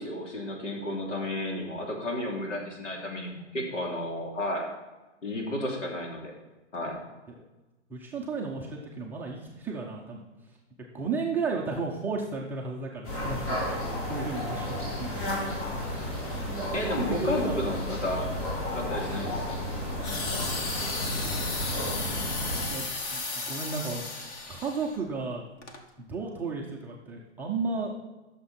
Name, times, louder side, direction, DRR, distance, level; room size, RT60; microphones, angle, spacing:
voice 1, 0.0-4.7 5.2-6.3 6.7-7.0 16.7-18.3 18.7-19.6, left 1 dB, 85° left, -1 dB, 3.2 m, -32 dB
voice 2, 7.9-10.2 10.9-15.2 16.4-17.6 21.1-21.4 21.9-22.0 22.7-24.0 24.5-25.4 26.0-27.9, right 4 dB, 5° right, -3 dB, 0.4 m, -34 dB
sound 1, 13.0-22.7, left 1 dB, 50° left, 3.8 m, -32 dB
sound 2, 20.0-25.0 25.6-25.8, left 3 dB, 20° left, 0.9 m, -34 dB
14.0 x 6.6 x 4.3 m, 1.1 s
hypercardioid pair, 140°, 36 cm